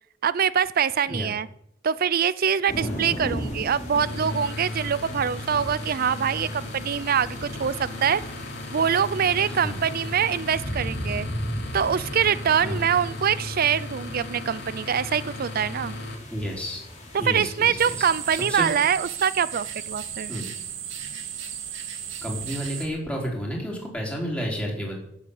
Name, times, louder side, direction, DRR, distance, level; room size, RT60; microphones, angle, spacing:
voice 1, 0.2-1.5 1.8-8.2 8.7-11.3 11.7-16.0 17.1-20.4, right 7 dB, 50° right, 17 dB, 0.5 m, -24 dB
sound 1, 2.7-18.5, equal, 40° left, 3.6 m, -37 dB
voice 2, 2.8-3.1 9.5-9.8 12.6-12.8 16.3-16.8 17.2-17.7 18.0-18.1 18.5-18.7 20.3-20.5 22.2-25.0, equal, 5° left, -2 dB, 4.1 m, -31 dB
sound 2, 3.9-16.2, left 2 dB, 60° left, 2.5 m, -36 dB
sound 3, 17.8-22.9, right 8 dB, 80° right, 2.5 m, -35 dB
17.0 x 7.9 x 7.1 m, 0.74 s
head